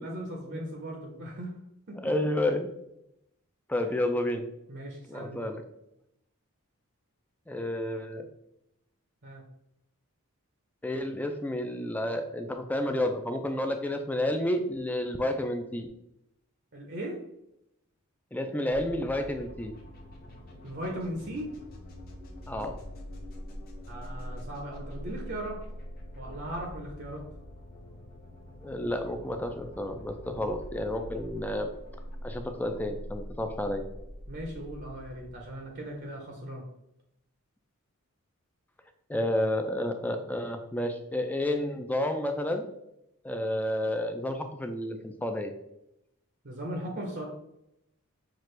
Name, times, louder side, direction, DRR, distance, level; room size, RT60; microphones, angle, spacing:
voice 1, 0.0-1.5 1.9-2.0 4.7-5.4 9.2-9.4 16.7-17.2 20.6-21.5 23.9-25.6 26.2-27.2 30.3-30.5 34.3-36.6 46.4-47.2, right 1 dB, 50° right, 1 dB, 0.7 m, -38 dB
voice 2, 2.0-2.7 3.7-4.5 5.1-5.6 7.5-8.3 10.8-15.9 18.3-19.7 22.5-22.8 28.6-31.7 32.2-33.8 39.1-42.7 43.2-45.5, left 1 dB, 5° left, 5 dB, 0.3 m, -30 dB
sound 1, 18.7-36.4, equal, 40° left, 0.9 m, -44 dB
6.0 x 2.4 x 3.2 m, 0.82 s
head